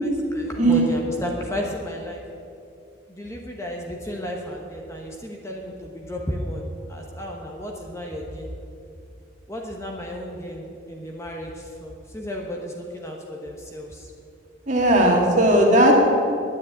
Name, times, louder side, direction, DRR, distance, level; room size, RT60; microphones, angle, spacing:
voice 1, 0.0-2.2 3.1-8.5 9.5-14.1 15.2-15.3, equal, 15° left, 0 dB, 1.1 m, -33 dB
voice 2, 0.6-0.9 14.7-16.1, right 1 dB, 35° right, 0 dB, 2.2 m, -17 dB
10.5 x 9.6 x 8.7 m, 2.5 s
head